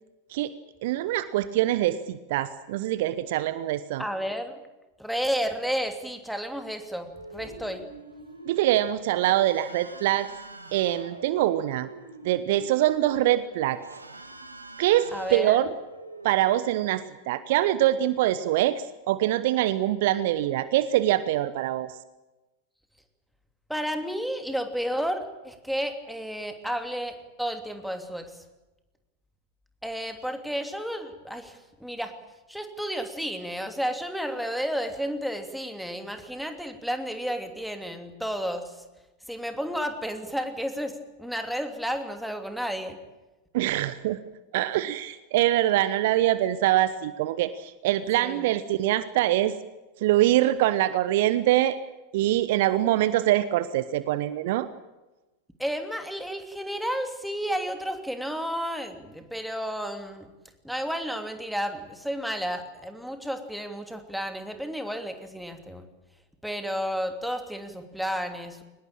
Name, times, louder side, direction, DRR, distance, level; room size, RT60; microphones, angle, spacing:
voice 1, 0.8-4.0 8.4-10.3 10.7-11.9 12.2-13.8 14.8-15.7 16.2-21.9 43.5-44.2 44.5-49.5 50.0-51.8 52.1-54.7, right 14 dB, 50° right, 15 dB, 1.0 m, -24 dB
voice 2, 4.0-4.6 5.0-7.9 15.1-15.6 23.7-28.4 29.8-32.1 32.5-38.8 39.3-43.0 48.2-48.5 55.6-60.3 60.6-65.9 66.4-68.6, equal, ahead, 6 dB, 2.9 m, -32 dB
sound 1, 7.1-16.3, right 2 dB, 80° right, 2.5 m, -44 dB
23.0 x 20.0 x 8.9 m, 1.1 s
figure-of-eight pair, 90°, 0 cm